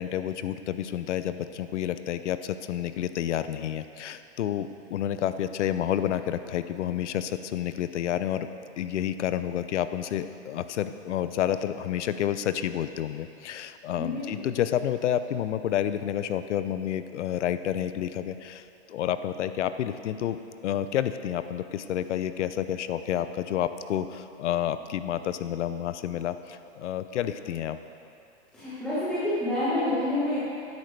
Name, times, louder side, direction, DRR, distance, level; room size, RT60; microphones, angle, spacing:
voice 1, 0.0-8.5 8.8-20.4 20.6-27.8, left 10 dB, 85° left, 12 dB, 0.7 m, -29 dB
voice 2, 14.0-14.4 28.5-30.4, left 1 dB, 5° left, -14 dB, 1.4 m, -28 dB
12.5 x 10.5 x 3.3 m, 2.6 s
supercardioid pair, 175°, 35 cm